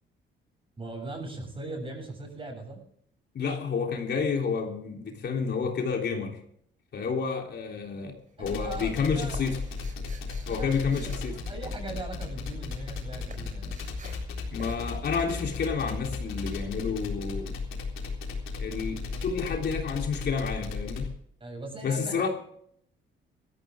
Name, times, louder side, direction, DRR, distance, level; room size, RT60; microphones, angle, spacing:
voice 1, 0.8-2.8 8.4-9.5 10.3-13.8 21.4-22.3, right 2 dB, 25° right, 3 dB, 7.4 m, -40 dB
voice 2, 3.3-6.4 6.9-9.6 10.5-11.3 14.5-17.5 18.6-21.1 21.8-22.3, left 5 dB, 60° left, 1 dB, 3.4 m, -30 dB
sound 1, 7.4-7.9 8.2-12.2 12.5-18.1, right 4 dB, 40° right, 4.0 m, -51 dB
sound 2, 8.4-21.1, left 4 dB, 85° left, 3.9 m, -35 dB
18.0 x 14.0 x 3.6 m, 0.66 s
cardioid pair, 90°, 20 cm